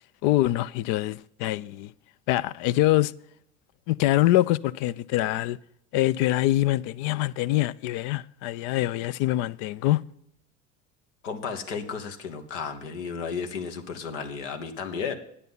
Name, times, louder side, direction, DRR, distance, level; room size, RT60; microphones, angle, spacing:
voice 1, 0.2-1.9 2.3-3.1 3.9-5.6 5.9-10.0, left 15 dB, 70° left, 0.5 m, -24 dB
voice 2, 11.2-15.2, left 6 dB, 90° left, 1.3 m, -33 dB
10.0 x 8.3 x 5.4 m
hypercardioid pair, 75°, 35 cm